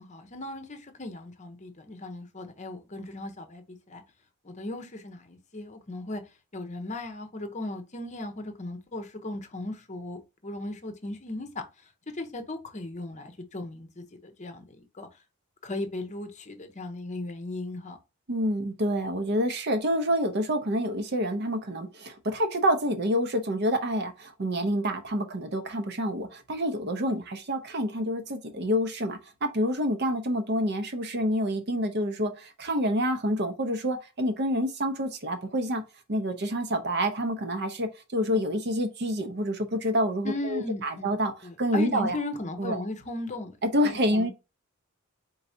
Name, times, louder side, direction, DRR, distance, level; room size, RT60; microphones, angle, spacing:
voice 1, 0.0-4.0 4.4-6.2 6.5-15.2 15.6-18.0 40.2-41.1 41.4-43.6 43.8-44.3, left 2 dB, 35° left, 0.7 m, -37 dB
voice 2, 18.3-35.8 36.1-41.3 41.6-42.2 42.6-42.8 43.6-44.3, equal, 50° right, 0.8 m, -27 dB
4.6 x 4.0 x 2.7 m
head